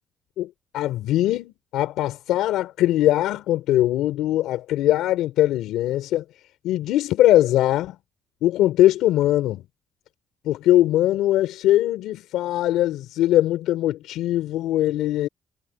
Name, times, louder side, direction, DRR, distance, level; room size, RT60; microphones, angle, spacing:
voice 1, 0.4-6.2 6.6-8.0 8.4-9.6 10.4-15.3, left 14 dB, 90° left, 4.2 m, -21 dB
cardioid pair, 90°, 0 cm